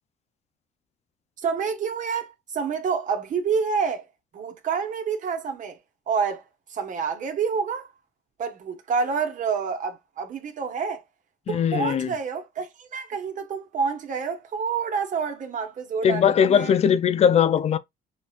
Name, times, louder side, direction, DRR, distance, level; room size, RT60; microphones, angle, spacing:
voice 1, 1.4-4.1 4.3-5.8 6.1-7.9 8.4-11.0 11.5-16.8, right 6 dB, 50° right, 1.5 m, -28 dB
voice 2, 11.5-12.1 16.0-17.8, left 8 dB, 40° left, 0.6 m, -20 dB
6.4 x 3.1 x 2.5 m
cardioid pair, 110°, 17 cm